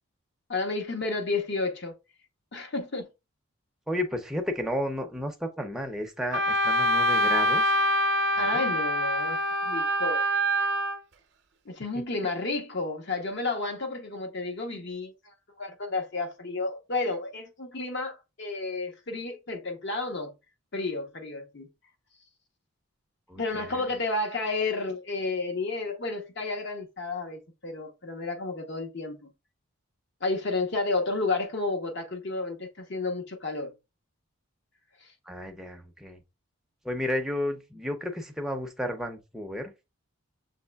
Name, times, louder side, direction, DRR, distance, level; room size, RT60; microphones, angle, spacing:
voice 1, 0.5-1.9 2.5-3.1 8.4-10.2 11.7-20.3 20.7-21.7 23.4-29.3 30.2-33.7 35.0-35.1, left 3 dB, 55° left, 0.8 m, -31 dB
voice 2, 3.9-7.8 8.4-8.6 23.3-23.9 35.3-36.2 36.8-39.9, left 1 dB, ahead, 0.5 m, -32 dB
Wind instrument woodwind instrument, 6.3-11.0, equal, 50° right, 0.6 m, -25 dB
6.3 x 3.1 x 2.3 m
head